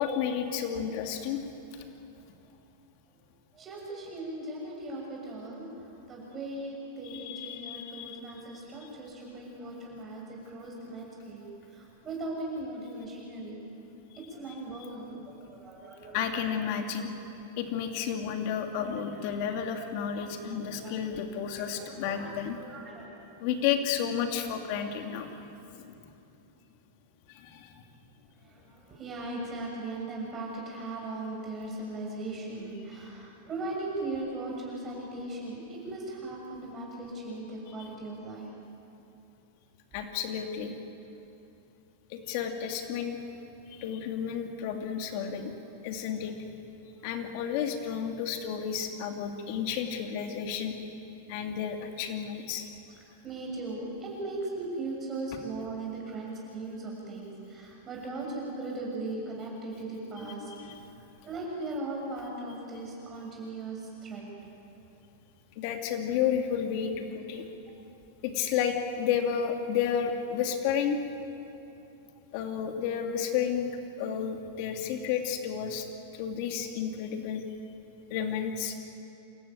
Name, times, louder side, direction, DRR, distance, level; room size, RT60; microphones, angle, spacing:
voice 1, 0.0-1.4 7.0-8.2 16.1-17.1 17.6-22.6 23.4-25.3 25.8-25.9 27.3-27.7 39.9-40.7 42.1-43.2 43.7-45.5 45.8-46.3 47.0-50.7 51.3-52.7 60.2-60.3 60.6-60.8 65.6-67.5 68.2-71.0 72.3-73.7 74.0-75.9 76.1-77.4 78.1-78.7, left 8 dB, 55° left, 4 dB, 2.8 m, -31 dB
voice 2, 3.5-13.6 14.1-16.2 17.0-17.1 18.6-18.7 19.2-19.3 20.2-20.3 20.7-21.2 21.5-22.3 22.6-23.0 28.4-38.5 53.2-60.5 61.2-64.2, right 2 dB, 25° right, -3 dB, 6.7 m, -38 dB
27.5 x 14.5 x 9.2 m, 2.9 s
supercardioid pair, 135°, 0 cm